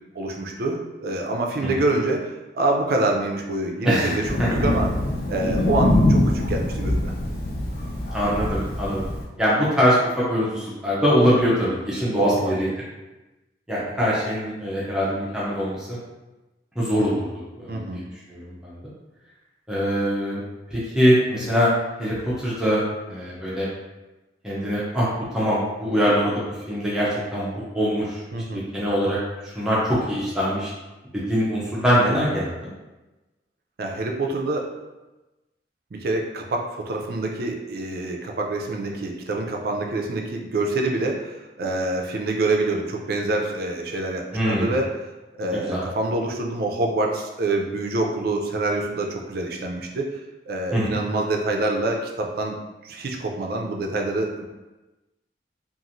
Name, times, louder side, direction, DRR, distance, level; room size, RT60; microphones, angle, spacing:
voice 1, 0.1-4.9 5.3-7.1 12.0-12.6 17.7-18.0 28.3-28.6 33.8-34.7 35.9-44.9 45.4-50.1 50.5-52.6 52.8-54.4, right 2 dB, 55° right, 1 dB, 0.4 m, -26 dB
voice 2, 3.8-4.1 4.4-4.5 8.1-9.0 9.4-12.7 13.7-16.0 16.8-18.0 18.3-18.7 19.7-20.4 20.7-21.7 22.0-22.8 23.1-23.7 24.4-25.1 25.3-28.2 28.5-29.2 29.4-30.7 31.1-32.7 44.3-44.8 45.5-45.8 50.7-51.0, equal, 5° right, -8 dB, 0.6 m, -23 dB
Thunder, 4.2-9.2, left 1 dB, 55° left, 0.5 m, -23 dB
2.9 x 2.4 x 2.6 m, 1.1 s
head